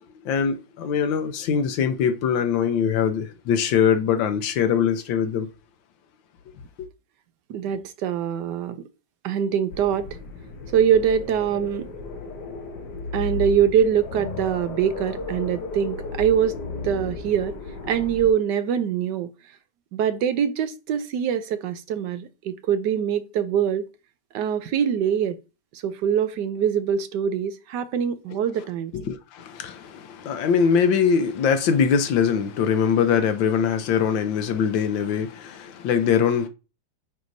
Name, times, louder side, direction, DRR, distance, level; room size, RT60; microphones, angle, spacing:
voice 1, 0.2-5.5 28.9-36.5, left 7 dB, 85° left, 1.5 m, -22 dB
voice 2, 7.5-8.8 9.2-10.1 10.7-11.9 13.1-16.6 16.8-17.5 17.9-19.3 19.9-23.8 24.3-25.4 25.7-28.9, right 8 dB, 70° right, 1.2 m, -23 dB
sound 1, 9.7-18.3, left 3 dB, 65° left, 1.7 m, -34 dB
9.3 x 4.7 x 2.6 m
omnidirectional pair, 2.0 m